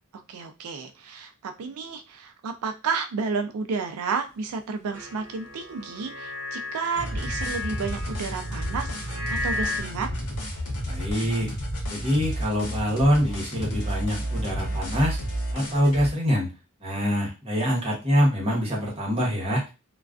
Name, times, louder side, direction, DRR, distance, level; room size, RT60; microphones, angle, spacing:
voice 1, 0.1-10.1, right 5 dB, 75° right, 6 dB, 0.4 m, -31 dB
sound 1, 4.9-9.8, left 2 dB, 55° right, 0.8 m, -34 dB
sound 2, 6.9-16.1, equal, 80° left, 0.8 m, -31 dB
voice 2, 10.9-11.5 11.9-15.2 15.5-16.5 16.8-19.6, equal, 25° right, -2 dB, 0.9 m, -24 dB
2.3 x 2.2 x 2.3 m, 0.28 s
head